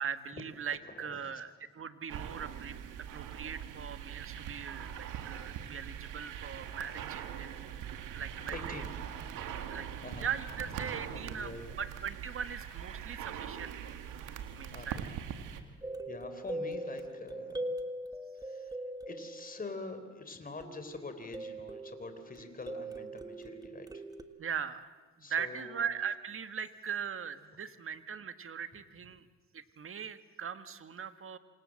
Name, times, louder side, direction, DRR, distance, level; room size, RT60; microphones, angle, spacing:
voice 1, 0.0-2.8 3.1-7.5 8.1-8.8 9.7-9.9 10.2-11.5 11.8-14.0 14.3-15.0 24.4-24.9 25.3-29.2 29.5-31.4, right 7 dB, 45° right, 11 dB, 1.6 m, -40 dB
voice 2, 0.9-1.4 8.5-8.9 9.4-9.8 10.0-10.3 11.1-11.8 14.7-15.1 15.5-17.8 18.3-24.0 25.2-26.0, left 3 dB, 30° left, 8 dB, 4.0 m, -46 dB
sound 1, 2.1-15.6, right 9 dB, 90° right, 2.2 m, -42 dB
sound 2, 15.8-20.1 20.6-24.2, right 1 dB, 10° right, 1.6 m, -41 dB
27.0 x 26.0 x 7.6 m, 1.4 s
cardioid pair, 90°, 30 cm